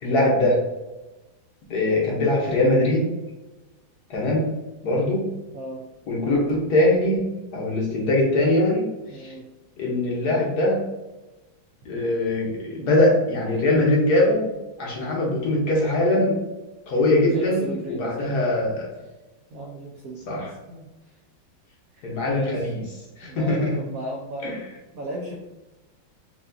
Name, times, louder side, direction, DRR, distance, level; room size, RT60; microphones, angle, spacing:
voice 1, 0.0-0.6 1.7-3.1 4.1-4.5 4.8-5.3 6.1-9.3 9.8-10.8 11.8-14.5 14.8-16.4 16.9-18.9 20.3-20.5 22.0-22.8 23.2-23.8 24.4-24.7, left 1 dB, 60° left, -3 dB, 1.2 m, -22 dB
voice 2, 5.5-5.8 9.1-9.4 17.2-18.4 19.5-20.3 20.7-20.9 22.3-22.6 23.2-24.6 24.9-25.3, right 1 dB, 90° right, -1 dB, 0.7 m, -35 dB
5.5 x 2.4 x 2.6 m, 1.1 s
omnidirectional pair, 2.2 m